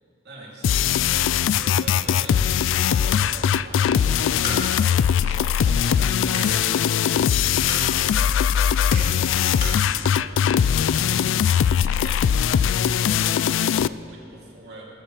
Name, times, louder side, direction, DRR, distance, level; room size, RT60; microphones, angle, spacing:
voice 1, 0.2-1.2 1.6-9.3 9.8-11.1 11.7-12.3 12.9-14.8, right 2 dB, 55° right, -4 dB, 2.9 m, -43 dB
sound 1, 0.6-13.9, left 8 dB, 85° left, 0.3 m, -21 dB
sound 2, 4.1-9.9, left 2 dB, 45° left, 2.8 m, -37 dB
20.0 x 15.0 x 3.2 m, 2.8 s
head